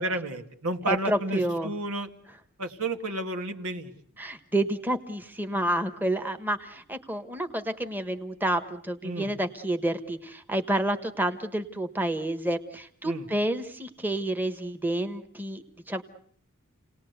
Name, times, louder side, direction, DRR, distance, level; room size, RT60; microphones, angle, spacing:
voice 1, 0.0-2.1 2.6-3.9 9.0-9.3 13.0-13.3, right 2 dB, 85° right, 5 dB, 2.1 m, -31 dB
voice 2, 0.9-1.7 4.2-16.0, right 1 dB, 10° right, 7 dB, 1.3 m, -29 dB
30.0 x 19.0 x 8.1 m, 0.63 s
head